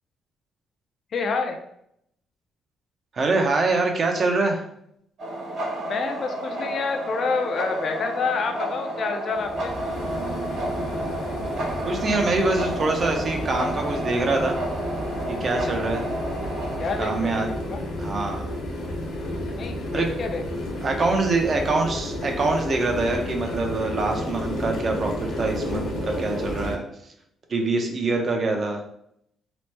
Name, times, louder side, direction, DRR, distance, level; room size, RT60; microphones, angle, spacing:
voice 1, 1.1-1.6 5.8-9.7 16.8-17.4 17.7-17.8 19.6-20.4, left 4 dB, 55° left, 5 dB, 0.3 m, -28 dB
voice 2, 3.1-4.6 11.8-14.5 15.3-16.0 17.0-17.5 18.0-18.4 19.9-20.1 20.8-26.8 27.5-28.8, right 3 dB, 45° right, 3 dB, 0.6 m, -24 dB
sound 1, 5.2-17.1, right 1 dB, 75° right, 1.3 m, -31 dB
sound 2, 9.3-26.8, left 1 dB, 80° left, 0.9 m, -31 dB
3.0 x 2.0 x 3.2 m, 0.73 s
cardioid pair, 90°, 0 cm